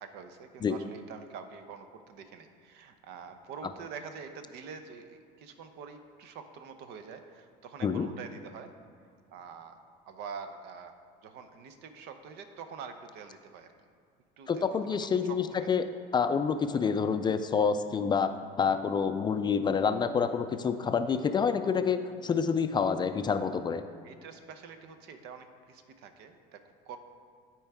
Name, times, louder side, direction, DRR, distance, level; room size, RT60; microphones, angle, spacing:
voice 1, 0.0-8.7 9.3-10.9 11.2-13.7 14.4-15.8 24.0-27.0, right 6 dB, 70° right, 8 dB, 0.7 m, -46 dB
voice 2, 14.5-15.8 16.1-18.3 18.6-23.8, left 6 dB, 25° left, 9 dB, 0.3 m, -28 dB
12.0 x 4.5 x 3.5 m, 2.2 s
cardioid pair, 110°, 18 cm